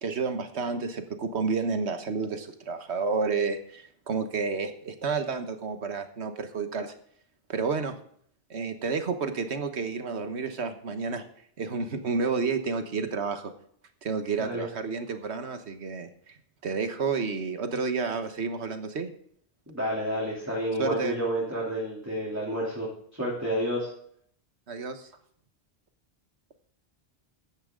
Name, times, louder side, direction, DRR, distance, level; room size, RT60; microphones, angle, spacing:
voice 1, 0.0-6.9 7.5-7.9 8.5-11.2 11.6-13.5 14.0-16.4 16.6-19.1 20.8-21.1 24.7-25.1, right 4 dB, 85° right, 8 dB, 1.5 m, -30 dB
voice 2, 19.7-23.9, equal, 15° right, -5 dB, 3.0 m, -30 dB
14.5 x 10.5 x 3.8 m, 0.64 s
omnidirectional pair, 1.1 m